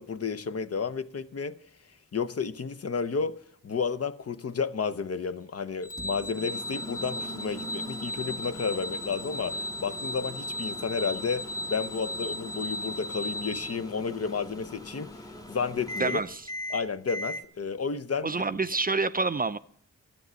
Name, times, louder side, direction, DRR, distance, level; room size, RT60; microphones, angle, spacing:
voice 1, 0.0-1.6 2.1-3.4 3.6-16.2 16.7-18.3, left 5 dB, 50° left, 0.7 m, -32 dB
sound 1, 5.8-13.7, left 1 dB, 75° left, 1.6 m, -36 dB
Microwave oven, 5.9-17.4, left 1 dB, 10° left, 1.1 m, -41 dB
voice 2, 16.0-16.4 18.2-19.6, right 3 dB, 25° right, 0.5 m, -27 dB
12.0 x 8.3 x 6.3 m
cardioid pair, 50°, 32 cm